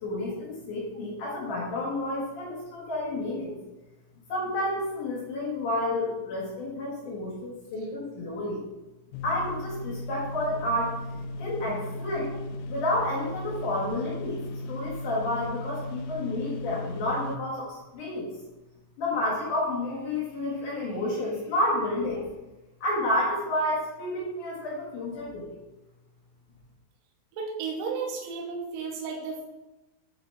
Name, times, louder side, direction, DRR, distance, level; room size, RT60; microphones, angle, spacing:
voice 1, 0.0-3.6 4.3-8.6 9.2-11.0 11.4-12.3 12.7-14.4 14.7-18.3 19.0-22.3 22.8-25.6, left 1 dB, 60° left, -5 dB, 2.2 m, -30 dB
sound 1, 9.1-17.4, left 1 dB, 85° left, 3.1 m, -36 dB
voice 2, 27.3-29.4, right 5 dB, 80° right, -1 dB, 1.9 m, -33 dB
10.5 x 4.1 x 3.3 m, 1.0 s
omnidirectional pair, 5.7 m